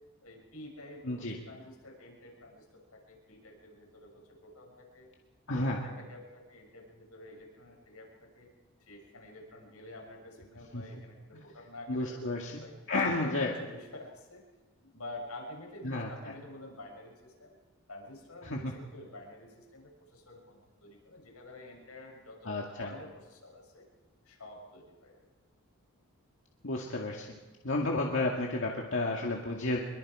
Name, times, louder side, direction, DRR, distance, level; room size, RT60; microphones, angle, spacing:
voice 1, 0.2-5.1 5.5-8.5 8.9-12.8 13.2-14.4 14.9-17.6 17.9-23.9 24.2-25.3, left 1 dB, 90° left, 0 dB, 7.0 m, -49 dB
voice 2, 1.0-1.4 5.5-5.8 10.7-10.8 11.3-11.4 11.9-12.6 12.9-13.5 15.8-16.1 18.4-18.7 22.5-22.9 26.6-27.3 27.6-29.8, left 2 dB, 60° left, -1 dB, 2.2 m, -31 dB
25.5 x 22.5 x 5.0 m, 1.2 s
head